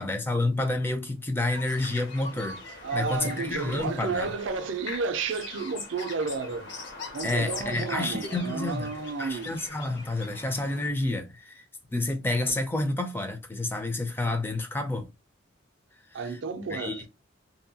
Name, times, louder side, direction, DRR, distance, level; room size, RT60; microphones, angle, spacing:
voice 1, 0.0-4.3 7.2-8.9 9.2-11.6 11.9-15.1 16.1-16.4 16.7-17.1, left 2 dB, 10° left, 0.4 m, -29 dB
sound 1, 1.5-10.9, left 3 dB, 65° left, 0.9 m, -42 dB
voice 2, 2.8-6.7 7.1-9.6 16.1-17.1, right 4 dB, 70° right, 0.4 m, -32 dB
2.7 x 2.2 x 2.6 m
head